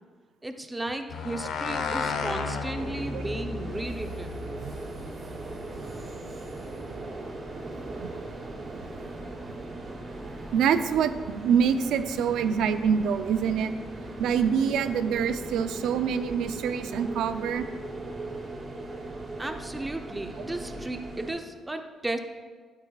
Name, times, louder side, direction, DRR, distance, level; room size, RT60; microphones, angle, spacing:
voice 1, 0.4-4.4 19.4-22.2, right 2 dB, 15° right, 6 dB, 0.8 m, -35 dB
sound 1, 1.1-5.8, left 4 dB, 75° left, 0.9 m, -34 dB
sound 2, 2.7-21.3, right 2 dB, 40° right, 2.0 m, -39 dB
sound 3, 5.1-21.3, right 1 dB, 50° left, 1.8 m, -49 dB
voice 2, 10.5-13.7 14.2-17.7, right 7 dB, 85° right, 10 dB, 0.5 m, -25 dB
12.0 x 9.6 x 2.4 m, 1.5 s
cardioid pair, 90°, 0 cm